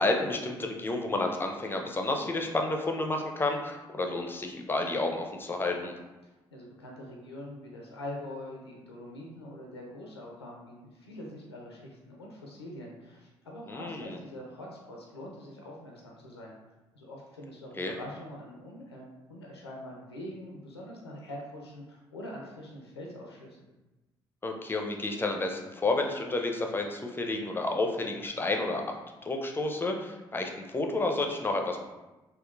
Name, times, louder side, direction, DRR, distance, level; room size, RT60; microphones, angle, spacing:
voice 1, 0.0-5.9 13.7-14.2 17.8-18.0 24.4-28.8 29.2-31.8, left 2 dB, 15° left, 2 dB, 0.5 m, -30 dB
voice 2, 6.2-16.6 16.9-23.6, left 1 dB, 90° left, -2 dB, 0.4 m, -44 dB
3.6 x 2.2 x 2.3 m, 1.1 s
figure-of-eight pair, 45°, 13 cm